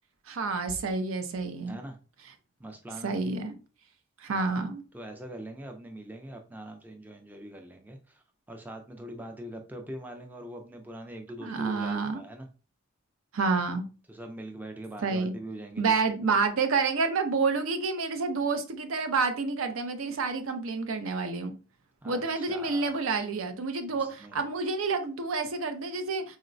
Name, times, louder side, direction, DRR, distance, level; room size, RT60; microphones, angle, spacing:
voice 1, 0.3-1.8 3.0-3.5 4.2-4.8 11.4-12.2 13.3-13.9 15.0-15.3 15.8-21.5 22.0-26.4, right 4 dB, 80° right, 0.5 m, -29 dB
voice 2, 2.6-3.2 4.3-4.6 4.9-12.5 14.1-16.0 22.0-22.9 23.9-24.5, right 1 dB, 10° right, 0.3 m, -43 dB
3.8 x 2.1 x 2.5 m
head